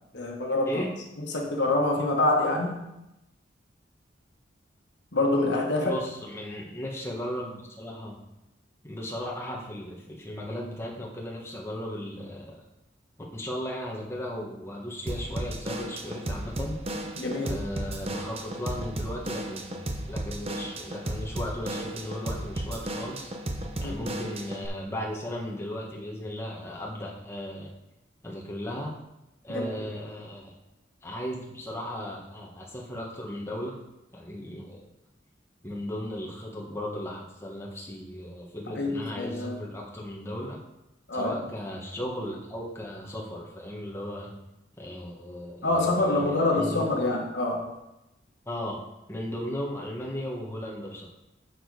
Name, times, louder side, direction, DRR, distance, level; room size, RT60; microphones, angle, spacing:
voice 1, 0.1-0.8 1.2-2.8 5.1-6.0 17.2-17.6 23.8-24.0 29.5-29.7 38.7-39.6 41.1-41.4 45.6-47.7, left 2 dB, 70° left, 1 dB, 1.3 m, -26 dB
voice 2, 5.8-8.2 8.8-12.5 13.3-16.8 17.4-19.8 20.1-23.3 23.8-27.7 28.2-28.9 29.4-30.5 31.0-33.8 34.1-34.8 35.6-40.6 41.1-44.3 44.8-46.2 46.5-47.1 48.5-48.8 49.1-51.1, left 1 dB, 15° left, -3 dB, 1.3 m, -36 dB
Drum kit / Drum, 15.1-24.7, right 1 dB, 35° right, 0.8 m, -34 dB
6.6 x 6.3 x 4.8 m, 0.92 s
head